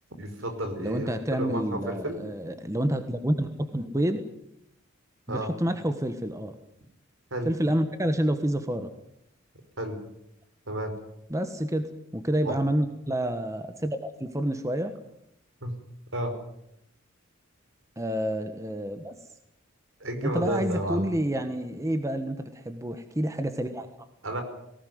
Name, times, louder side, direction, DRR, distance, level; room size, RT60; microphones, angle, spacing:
voice 1, 0.2-2.2 5.3-5.5 7.3-7.5 9.8-10.0 10.7-11.0 12.4-12.6 15.6-15.7 16.1-16.4 20.0-21.1 24.2-24.4, right 1 dB, 70° right, 7 dB, 5.2 m, -31 dB
voice 2, 0.8-4.2 5.3-6.5 7.4-8.9 11.3-14.9 18.0-19.1 20.2-24.1, right 1 dB, 15° right, 8 dB, 1.3 m, -28 dB
18.5 x 18.5 x 9.5 m, 0.79 s
head